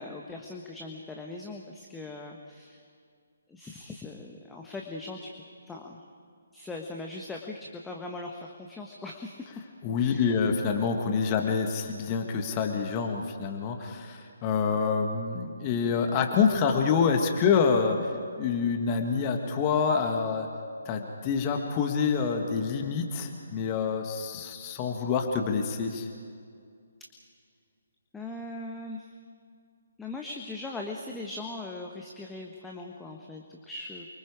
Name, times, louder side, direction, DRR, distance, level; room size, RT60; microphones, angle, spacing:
voice 1, 0.0-2.8 3.5-5.3 5.7-6.0 6.5-9.5 10.0-10.4 28.1-29.1 30.0-34.1, left 2 dB, 5° left, 0 dB, 1.3 m, -40 dB
voice 2, 9.8-18.1 18.4-20.5 20.9-26.1, left 5 dB, 25° left, 4 dB, 1.8 m, -27 dB
28.5 x 24.5 x 5.0 m, 2.3 s
figure-of-eight pair, 140°, 0 cm